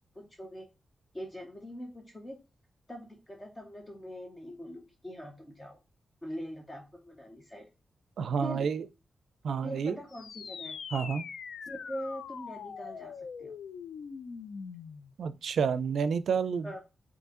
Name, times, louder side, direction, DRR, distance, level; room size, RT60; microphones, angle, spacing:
voice 1, 0.1-0.7 1.1-2.4 2.9-5.8 6.2-7.7 8.4-8.7 9.6-10.8 11.7-13.5 16.6-16.8, equal, 15° left, 0.6 m, -42 dB
voice 2, 8.2-8.8 9.4-10.0 10.9-11.2 15.2-16.7, right 6 dB, 80° right, 0.4 m, -29 dB
sound 1, 10.1-15.1, left 6 dB, 70° left, 0.3 m, -42 dB
5.3 x 2.7 x 3.6 m
wide cardioid pair, 170°, 0 cm